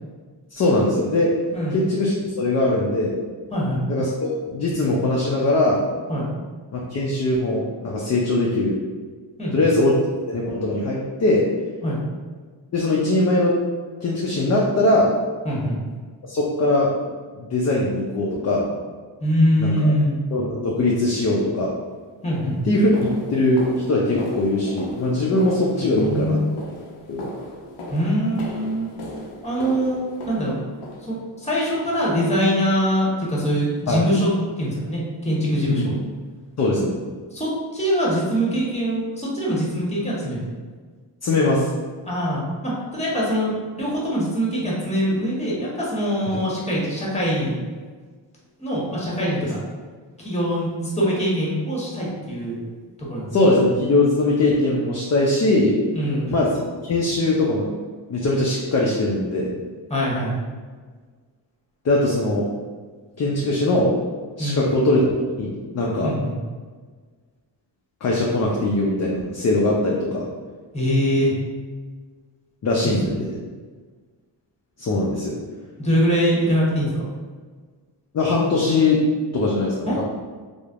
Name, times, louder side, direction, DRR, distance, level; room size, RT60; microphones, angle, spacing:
voice 1, 0.5-1.3 1.7-3.2 3.9-5.8 6.7-8.8 9.5-10.0 10.3-11.4 12.7-13.6 14.0-15.1 16.3-16.9 17.3-18.7 19.6-19.9 20.3-21.7 22.6-26.4 27.1-27.2 33.9-34.0 35.7-35.9 36.6-37.0 41.2-41.7 46.3-46.4 53.3-55.8 56.3-57.7 58.1-59.5 61.8-62.4 63.2-63.9 64.4-65.1 65.4-66.1 68.0-70.3 72.6-73.3 74.8-75.4 78.1-79.0 79.3-80.0, left 2 dB, 35° left, -3 dB, 0.5 m, -21 dB
voice 2, 3.5-3.8 6.1-6.3 9.4-9.7 11.8-12.0 15.4-15.8 19.2-20.2 22.2-22.6 25.8-26.5 27.9-28.9 29.4-30.5 31.1-34.3 34.6-35.9 37.3-40.5 42.0-47.6 48.6-49.6 50.2-52.6 53.1-53.5 55.9-56.3 59.9-60.4 64.4-64.9 66.0-66.3 70.7-71.3 72.8-72.9 75.8-77.1 79.9-80.0, equal, 15° left, -5 dB, 1.0 m, -23 dB
sound 1, 21.6-21.8 22.3-31.5 32.0-32.4 32.6-32.8 33.2-33.4 33.8-33.9 34.4-34.5, left 1 dB, 90° left, 0.6 m, -38 dB
3.1 x 2.1 x 2.4 m, 1.5 s
cardioid pair, 60°, 48 cm